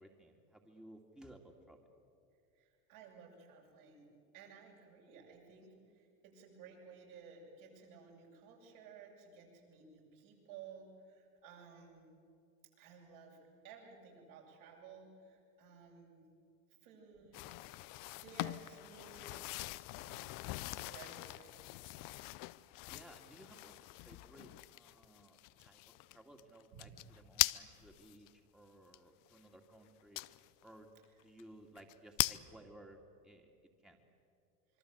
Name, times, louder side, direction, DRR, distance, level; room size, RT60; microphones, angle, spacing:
voice 1, 0.0-1.8 22.9-30.2 30.6-30.9 31.2-33.5 33.8-34.0, right 1 dB, ahead, 2 dB, 2.4 m, -58 dB
voice 2, 2.5-12.1 12.8-13.4 13.6-16.2 16.8-17.6 18.1-19.6 19.9-21.5 26.7-27.0, right 6 dB, 65° right, -1 dB, 8.0 m, -56 dB
sound 1, 17.3-28.3 28.9-29.0 30.2-30.6 31.0-31.1 31.4-31.5 31.8-32.4, left 21 dB, 45° left, 0.7 m, -41 dB
26.0 x 23.5 x 8.1 m, 2.4 s
hypercardioid pair, 85°, 46 cm